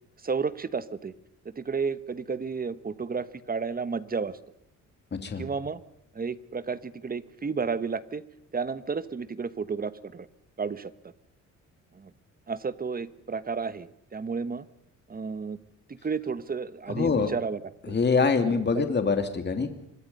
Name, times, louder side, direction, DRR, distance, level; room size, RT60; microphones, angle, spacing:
voice 1, 0.2-1.1 1.4-4.4 5.4-5.8 6.1-8.2 8.5-10.3 10.6-10.9 11.9-12.1 12.5-14.7 15.1-15.6 15.9-17.6 17.9-18.0 18.4-18.9, right 5 dB, 30° right, 15 dB, 1.3 m, -32 dB
voice 2, 5.1-5.5 16.9-17.3 17.9-19.7, left 5 dB, 35° left, 7 dB, 2.7 m, -25 dB
25.5 x 23.5 x 5.5 m, 0.81 s
cardioid pair, 90°, 30 cm